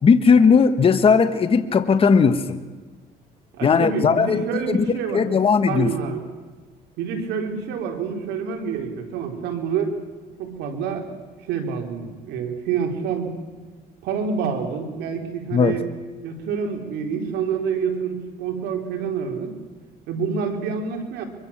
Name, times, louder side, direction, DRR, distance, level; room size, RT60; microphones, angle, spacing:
voice 1, 0.0-2.6 3.6-4.8 5.1-5.9 15.5-15.7, left 5 dB, 35° left, 8 dB, 1.5 m, -17 dB
voice 2, 3.5-5.2 5.7-6.3 7.0-9.9 10.4-11.2 11.5-13.3 14.0-15.9 16.2-19.6 20.1-21.2, right 6 dB, 85° right, 3 dB, 4.3 m, -27 dB
24.0 x 23.5 x 7.4 m, 1.4 s
cardioid pair, 110°, 17 cm